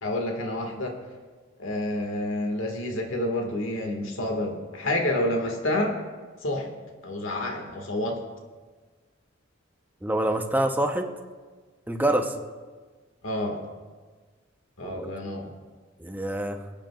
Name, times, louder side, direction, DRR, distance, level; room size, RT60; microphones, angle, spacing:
voice 1, 0.0-1.0 1.6-6.0 6.4-6.7 7.0-8.2 13.2-13.6 14.8-15.6, left 1 dB, 85° left, 2 dB, 1.7 m, -29 dB
voice 2, 10.0-11.1 11.9-12.3 14.8-15.1 16.0-16.6, right 1 dB, 10° right, 5 dB, 0.7 m, -26 dB
26.0 x 9.0 x 2.3 m, 1.4 s
head